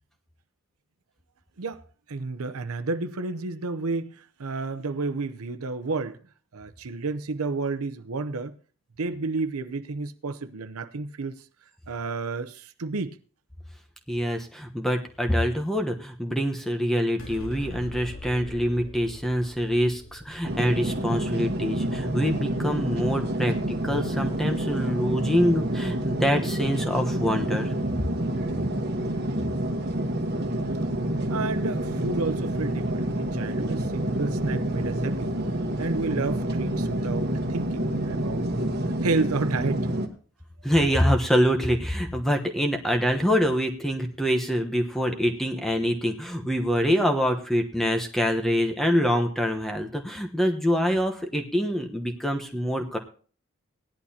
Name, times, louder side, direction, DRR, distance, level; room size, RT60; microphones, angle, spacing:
voice 1, 2.1-6.2 6.5-8.5 9.0-11.4 11.9-13.2 31.3-35.3 35.8-38.8 39.0-39.8, right 3 dB, 85° right, 0.7 m, -31 dB
voice 2, 14.1-27.7 40.6-53.0, equal, ahead, 1.0 m, -25 dB
sound 1, 17.2-23.9, left 2 dB, 70° left, 3.1 m, -43 dB
sound 2, 20.4-40.1, right 1 dB, 50° right, 1.3 m, -28 dB
17.5 x 11.0 x 2.8 m
head